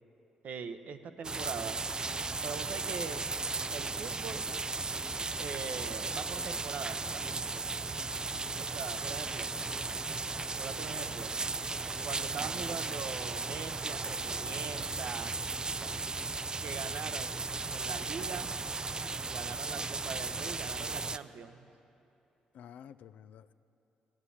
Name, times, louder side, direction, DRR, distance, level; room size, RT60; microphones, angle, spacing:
voice 1, 0.4-1.8 2.4-3.3 3.7-4.5 5.2-7.3 8.6-9.5 10.6-11.3 12.0-15.4 16.6-17.4 17.7-18.5 19.2-21.7, right 6 dB, 65° right, 9 dB, 0.7 m, -42 dB
sound 1, 1.2-21.2, right 3 dB, 30° right, 0.4 m, -36 dB
voice 2, 8.3-9.0 22.5-23.5, left 9 dB, 70° left, 13 dB, 0.4 m, -52 dB
14.5 x 9.8 x 6.9 m, 2.9 s
hypercardioid pair, 50°, 3 cm